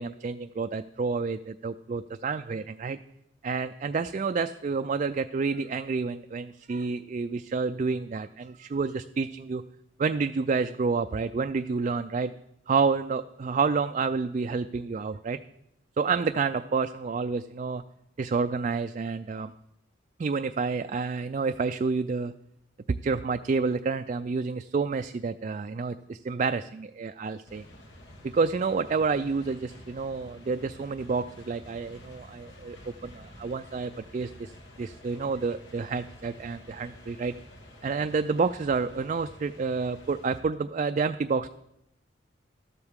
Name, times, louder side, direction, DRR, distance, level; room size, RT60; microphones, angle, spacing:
voice 1, 0.0-3.0 3.4-9.6 10.0-12.3 12.7-15.4 16.0-17.8 18.2-19.5 20.2-22.3 22.9-27.6 28.3-32.8 33.0-34.5 34.8-37.3 37.8-41.5, right 4 dB, 40° right, 9 dB, 0.3 m, -29 dB
sound 1, 27.5-40.4, left 1 dB, 75° left, 2.0 m, -50 dB
13.0 x 12.5 x 3.6 m, 0.82 s
head